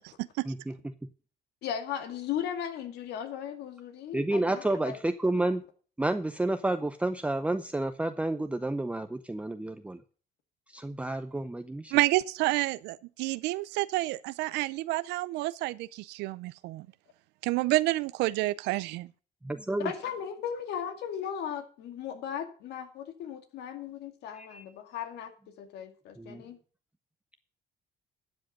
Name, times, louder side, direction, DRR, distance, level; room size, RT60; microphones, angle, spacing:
voice 1, 0.4-1.1 4.1-5.6 6.0-10.0 10.7-11.9 19.4-19.9 24.3-24.7 26.2-26.5, right 2 dB, 5° right, 0.6 m, -30 dB
voice 2, 1.6-5.0 5.2-5.3 19.8-26.6, left 8 dB, 75° left, 2.2 m, -37 dB
voice 3, 11.9-16.9 17.4-19.1, right 19 dB, 90° right, 0.5 m, -29 dB
12.0 x 7.6 x 5.2 m
cardioid pair, 110°, 17 cm